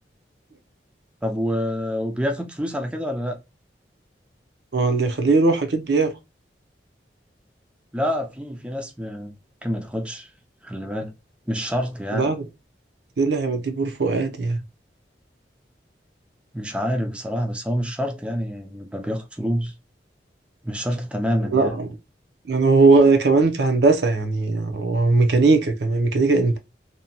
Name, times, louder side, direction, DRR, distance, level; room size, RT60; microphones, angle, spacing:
voice 1, 1.2-3.4 7.9-10.3 10.6-11.1 11.5-12.3 16.5-19.7 20.6-21.7, equal, 5° right, 0.4 m, -27 dB
voice 2, 4.7-6.1 12.1-12.4 13.2-14.6 21.4-21.9 22.5-26.6, right 3 dB, 70° right, 0.6 m, -19 dB
2.7 x 2.2 x 2.7 m
head